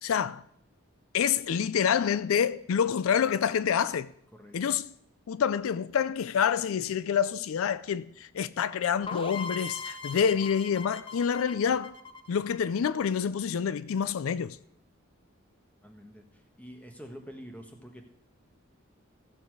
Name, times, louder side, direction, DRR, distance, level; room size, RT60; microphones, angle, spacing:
voice 1, 0.0-0.4 1.1-4.1 4.5-4.9 5.3-12.0 12.3-14.6, left 7 dB, 80° left, 0.4 m, -27 dB
voice 2, 4.3-4.7 15.8-16.2 16.6-18.1, equal, 5° left, 1.3 m, -46 dB
sound 1, 9.1-12.8, left 4 dB, 25° left, 0.7 m, -40 dB
15.5 x 6.9 x 4.7 m
head